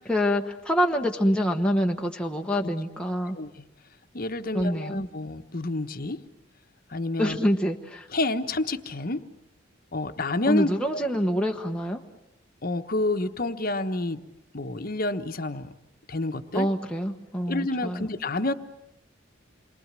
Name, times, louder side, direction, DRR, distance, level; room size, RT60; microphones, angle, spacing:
voice 1, 0.1-3.4 4.5-5.0 7.2-8.1 10.5-12.0 16.5-18.1, equal, 5° left, 1 dB, 1.2 m, -26 dB
voice 2, 3.3-3.7 4.1-6.2 6.9-7.4 8.1-9.2 9.9-11.0 12.6-14.2 14.5-15.7 16.1-16.7 17.5-18.5, left 2 dB, 45° left, 9 dB, 1.2 m, -29 dB
28.5 x 23.5 x 7.6 m, 0.83 s
head